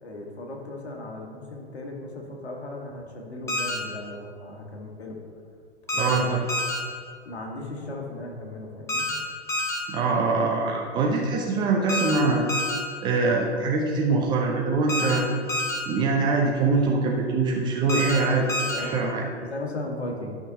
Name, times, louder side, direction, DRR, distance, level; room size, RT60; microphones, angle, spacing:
voice 1, 0.0-5.2 5.9-6.3 7.2-9.1 18.7-20.3, left 1 dB, 70° left, 1 dB, 1.6 m, -37 dB
sound 1, 3.5-3.8 5.9-6.2 6.5-6.8 8.9-9.2 9.5-9.8 11.9-12.2 12.5-12.8 14.9-15.2 15.5-15.8 17.9-18.2 18.5-18.8, left 1 dB, 10° left, 0.9 m, -27 dB
voice 2, 6.0-6.4 9.9-12.5 13.0-15.3 15.9-19.2, right 3 dB, 15° right, 0 dB, 0.4 m, -23 dB
11.5 x 5.9 x 2.9 m, 2.1 s
figure-of-eight pair, 105°, 34 cm